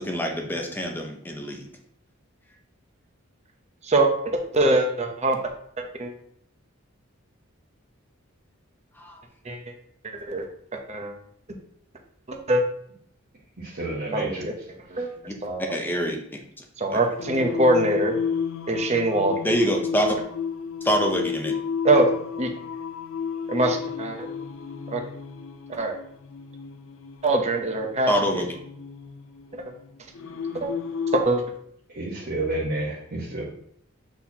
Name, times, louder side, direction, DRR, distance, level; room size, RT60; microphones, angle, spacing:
voice 1, 0.0-1.7 9.0-9.2 15.3-15.4 15.7-16.2 16.6-16.7 16.9-17.0 19.4-20.1 20.8-21.5 28.1-28.5, equal, 10° left, 2 dB, 0.7 m, -25 dB
voice 2, 3.8-5.4 6.0-6.1 9.4-9.6 10.0-10.4 10.9-11.1 12.3-12.6 14.1-14.5 14.9-15.1 15.4-15.6 16.8-18.1 18.7-19.4 21.8-22.1 22.4-22.5 23.5-24.3 24.9-25.0 25.7-25.9 27.2-28.4 29.5-29.6 30.5-30.7 31.1-31.4, right 2 dB, 30° right, 3 dB, 0.8 m, -23 dB
voice 3, 13.6-14.5 14.9-15.1 31.9-33.4, right 2 dB, 50° right, -6 dB, 1.3 m, -30 dB
Singing, 17.2-31.2, left 6 dB, 70° left, 0.5 m, -32 dB
8.0 x 4.2 x 2.9 m, 0.67 s
head